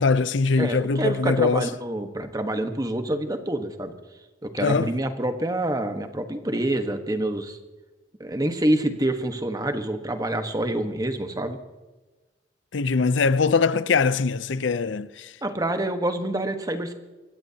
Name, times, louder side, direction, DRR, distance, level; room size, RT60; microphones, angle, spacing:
voice 1, 0.0-1.7 4.6-4.9 12.7-15.3, left 4 dB, 85° left, 0.6 m, -22 dB
voice 2, 0.6-3.9 4.4-7.6 8.2-11.6 15.4-16.9, right 1 dB, 20° right, 1.2 m, -27 dB
24.0 x 15.5 x 2.8 m
head